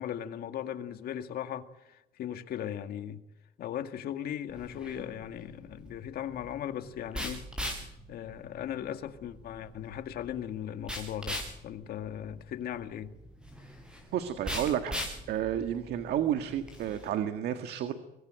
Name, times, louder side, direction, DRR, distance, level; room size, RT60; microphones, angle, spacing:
voice 1, 0.0-3.2 3.6-7.4 7.8-13.1, left 10 dB, 65° left, 2.1 m, -38 dB
sound 1, 4.5-17.1, equal, 5° right, 7.7 m, -41 dB
voice 2, 14.1-15.0 15.3-17.9, right 10 dB, 70° right, 1.8 m, -31 dB
24.5 x 20.0 x 9.1 m
cardioid pair, 110°, 17 cm